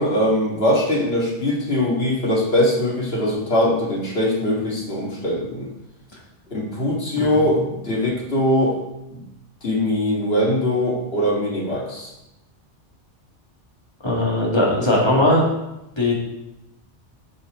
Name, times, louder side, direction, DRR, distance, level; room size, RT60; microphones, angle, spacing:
voice 1, 0.0-5.7 6.5-8.8 9.1-9.2 9.6-12.1, left 1 dB, 55° left, -4 dB, 2.3 m, -21 dB
voice 2, 14.0-15.4 16.0-16.2, left 1 dB, 25° left, -4 dB, 1.9 m, -19 dB
8.9 x 5.8 x 3.7 m, 0.92 s
omnidirectional pair, 1.2 m